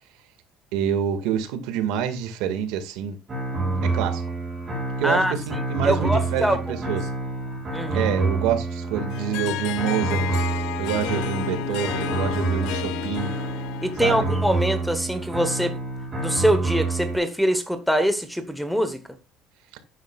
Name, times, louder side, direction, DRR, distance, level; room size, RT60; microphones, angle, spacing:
voice 1, 0.7-3.2 3.8-4.2 5.0-7.1 7.9-10.3 10.8-13.4 14.0-14.2 19.7-19.8, right 8 dB, 85° right, 1.9 m, -27 dB
sound 1, 3.3-17.2, right 3 dB, 20° right, 6.1 m, -28 dB
voice 2, 5.0-5.3 5.8-6.8 7.7-8.1 13.8-15.8 16.2-19.0, equal, ahead, 1.1 m, -23 dB
Harp, 9.1-14.9, left 16 dB, 70° left, 0.7 m, -32 dB
12.0 x 9.6 x 2.4 m
cardioid pair, 160°, 0 cm